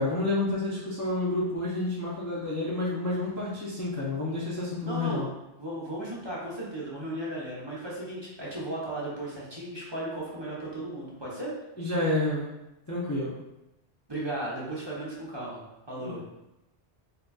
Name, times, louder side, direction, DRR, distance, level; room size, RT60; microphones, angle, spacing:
voice 1, 0.0-5.3 11.8-12.5 12.9-13.4 15.9-16.4, left 2 dB, 25° left, -8 dB, 0.4 m, -29 dB
voice 2, 4.8-5.2 5.5-11.5 14.1-15.6 15.9-16.2, right 1 dB, 25° right, -7 dB, 0.7 m, -35 dB
3.8 x 2.7 x 2.3 m, 0.95 s
omnidirectional pair, 1.1 m